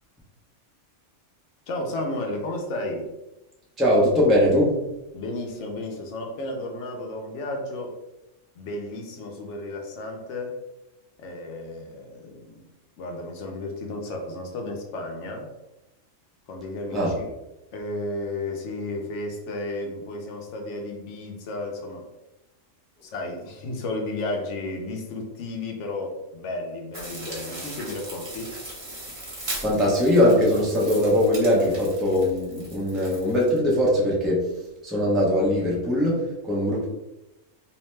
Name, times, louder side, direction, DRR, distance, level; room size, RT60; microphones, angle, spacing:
voice 1, 1.7-3.1 5.1-8.0 8.6-10.5 11.2-12.6 13.0-15.5 16.5-17.3 17.7-22.1 23.0-28.6, left 2 dB, 70° left, 2 dB, 0.9 m, -33 dB
voice 2, 3.8-4.8 16.9-17.1 29.6-34.6 34.8-36.9, left 1 dB, ahead, -5 dB, 0.4 m, -21 dB
sound 1, 26.9-33.6, right 1 dB, 30° right, 0.7 m, -38 dB
2.7 x 2.1 x 3.1 m, 0.96 s
omnidirectional pair, 1.3 m